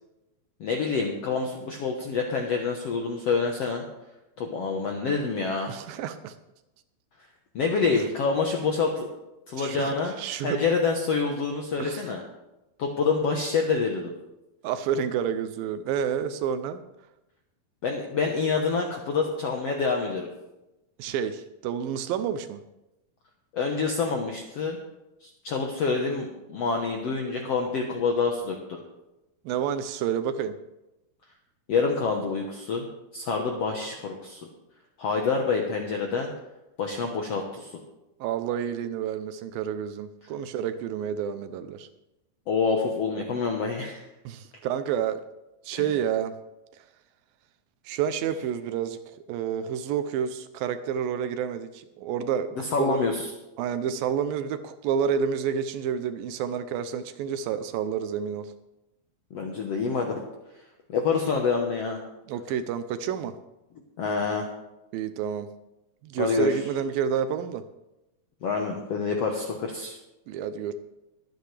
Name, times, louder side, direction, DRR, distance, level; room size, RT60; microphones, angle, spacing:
voice 1, 0.6-3.8 4.4-5.7 7.5-9.1 9.5-10.1 10.4-12.2 12.8-14.1 17.8-20.3 23.5-24.8 25.2-28.6 31.7-32.9 33.1-34.4 35.0-36.3 36.8-37.7 42.5-44.0 45.7-45.8 52.6-53.3 59.3-60.2 60.9-62.0 64.0-64.5 66.2-66.6 68.4-70.0, left 4 dB, 70° left, 1 dB, 1.5 m, -27 dB
voice 2, 5.7-6.3 7.9-8.0 9.6-10.6 11.8-12.1 14.6-16.8 21.0-22.6 29.5-30.6 38.2-41.9 44.3-45.2 45.6-46.3 47.9-49.0 49.3-53.0 53.6-58.5 62.3-63.3 64.9-65.5 66.0-67.6 70.3-70.7, right 8 dB, 80° right, 10 dB, 2.3 m, -29 dB
22.5 x 8.8 x 3.3 m, 0.94 s
omnidirectional pair, 4.4 m